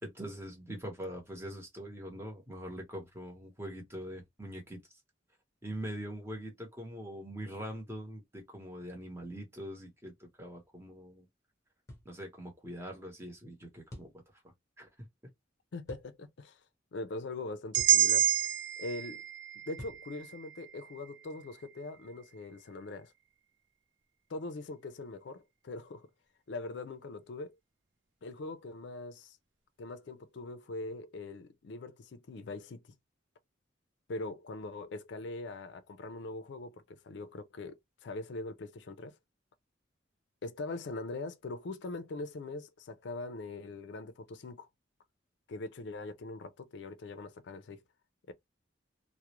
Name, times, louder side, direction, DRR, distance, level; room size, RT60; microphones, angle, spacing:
voice 1, 0.0-5.0 5.6-11.3 12.0-14.4 14.8-14.9, equal, 15° right, 0.8 m, -43 dB
sound 1, 11.9-12.1 13.9-14.2 15.9-16.1 17.8-18.0 19.8-20.1, left 1 dB, 15° left, 0.9 m, -47 dB
voice 2, 15.7-16.6 16.9-18.3 18.8-19.2 19.7-23.1 24.3-26.1 26.5-27.5 28.2-29.4 29.8-32.8 34.1-39.2 40.4-44.7 45.5-47.8 48.3-48.4, left 2 dB, 65° left, 0.4 m, -42 dB
sound 2, 17.7-21.8, right 10 dB, 65° right, 0.5 m, -30 dB
2.3 x 2.0 x 2.9 m
head